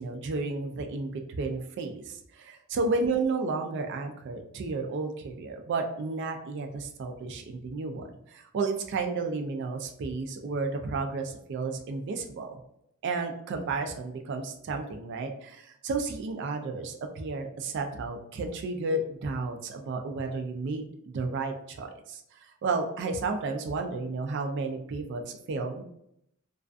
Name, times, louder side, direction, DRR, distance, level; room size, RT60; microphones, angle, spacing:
voice 1, 0.0-12.6 13.0-25.8, right 3 dB, 55° right, 4 dB, 0.3 m, -32 dB
2.4 x 2.3 x 2.3 m, 0.75 s
head